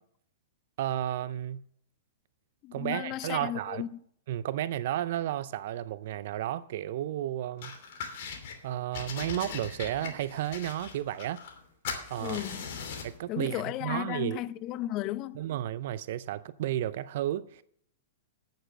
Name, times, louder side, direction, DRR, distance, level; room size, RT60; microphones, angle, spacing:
voice 1, 0.8-1.6 2.7-3.8 4.3-7.7 8.6-11.4 12.1-12.4 13.0-14.4 15.4-17.6, right 12 dB, 60° right, 0.5 m, -32 dB
voice 2, 2.6-4.0 12.2-12.7 13.3-15.4, left 14 dB, 40° left, 0.5 m, -34 dB
sound 1, 7.6-8.6 8.9-11.6 11.8-13.2, left 6 dB, 60° left, 2.7 m, -39 dB
9.2 x 8.8 x 6.5 m
hypercardioid pair, 115°, 0 cm